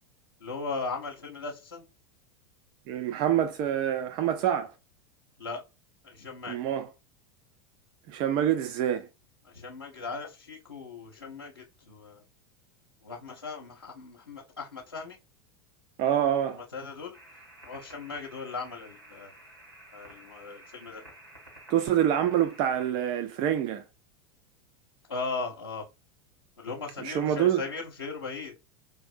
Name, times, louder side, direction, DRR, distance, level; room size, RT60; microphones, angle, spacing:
voice 1, 0.4-1.8 5.4-5.6 6.0-6.6 9.5-12.2 13.0-15.2 16.5-17.2 17.7-19.3 19.9-21.1 25.1-25.8 26.6-28.5, left 4 dB, 80° left, 0.6 m, -38 dB
voice 2, 2.9-4.7 6.5-6.9 8.1-9.1 16.0-16.6 21.7-23.8 27.0-27.6, right 10 dB, 40° right, 0.4 m, -26 dB
sound 1, 17.1-22.9, right 1 dB, 85° right, 2.1 m, -52 dB
4.5 x 2.6 x 2.5 m
figure-of-eight pair, 85°, 12 cm